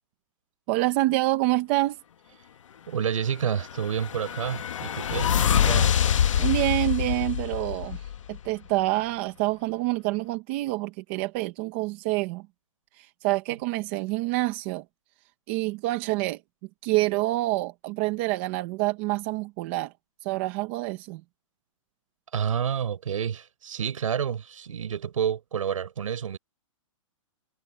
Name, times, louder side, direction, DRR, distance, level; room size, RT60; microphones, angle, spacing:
voice 1, 0.7-2.0 6.4-8.0 8.3-12.4 13.0-14.8 15.5-16.4 16.8-19.9 20.2-21.2, right 18 dB, 20° right, 1.2 m, -27 dB
voice 2, 2.9-5.9 22.3-26.4, right 8 dB, 70° right, 6.4 m, -29 dB
sound 1, 3.5-8.5, left 9 dB, 65° left, 1.5 m, -25 dB
hypercardioid pair, 180°, 17 cm